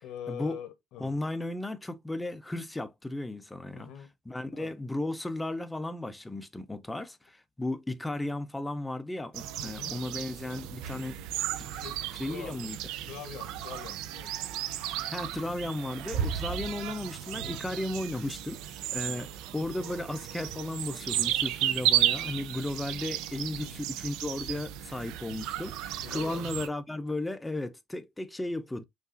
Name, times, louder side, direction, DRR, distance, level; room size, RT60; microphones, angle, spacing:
voice 1, 0.0-1.1 3.7-4.1 4.5-4.7 9.6-10.0 11.7-12.7 13.1-14.3 16.5-16.7 19.0-19.2 23.6-23.9 26.0-26.5, left 9 dB, 65° left, 0.8 m, -44 dB
voice 2, 1.0-3.9 4.3-11.2 11.6-11.7 12.2-12.8 15.1-19.3 19.5-28.8, left 2 dB, 5° left, 0.3 m, -35 dB
sound 1, 9.3-26.7, right 12 dB, 85° right, 0.4 m, -34 dB
5.4 x 2.3 x 2.4 m
cardioid pair, 175°, 0 cm